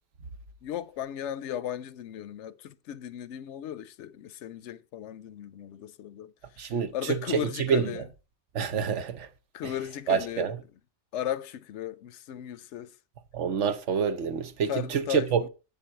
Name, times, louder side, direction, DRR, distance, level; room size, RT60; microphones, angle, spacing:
voice 1, 0.6-8.1 9.5-10.6 11.1-12.9 14.7-15.5, left 11 dB, 75° left, 0.9 m, -36 dB
voice 2, 6.6-7.9 8.5-9.3 10.1-10.6 13.3-15.4, right 7 dB, 80° right, 1.2 m, -27 dB
7.3 x 7.2 x 4.6 m
omnidirectional pair, 1.2 m